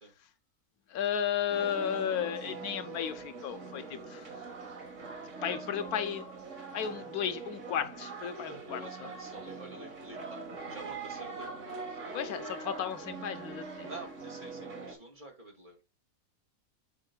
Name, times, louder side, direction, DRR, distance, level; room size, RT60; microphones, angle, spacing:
voice 1, 0.9-4.3 5.4-6.3 6.7-9.1 12.1-13.9, left 9 dB, 90° left, 1.3 m, -34 dB
sound 1, 1.5-14.9, right 4 dB, 55° right, 1.8 m, -43 dB
voice 2, 5.4-5.8 8.5-12.4 13.8-15.8, right 2 dB, 35° right, 2.1 m, -49 dB
8.3 x 5.3 x 2.2 m
omnidirectional pair, 1.5 m